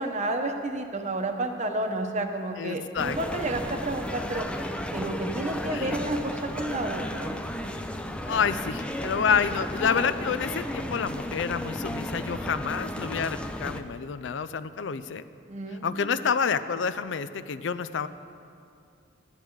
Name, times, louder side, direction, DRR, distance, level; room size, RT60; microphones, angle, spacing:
voice 1, 0.0-4.4 4.9-7.3 15.5-16.1, right 2 dB, 40° right, 5 dB, 0.9 m, -31 dB
voice 2, 2.6-3.5 5.7-6.0 8.3-15.2 15.8-18.1, left 6 dB, 75° left, 13 dB, 0.4 m, -28 dB
sound 1, 3.0-13.8, left 1 dB, 5° left, 0.4 m, -34 dB
13.0 x 10.5 x 4.7 m, 2.4 s
head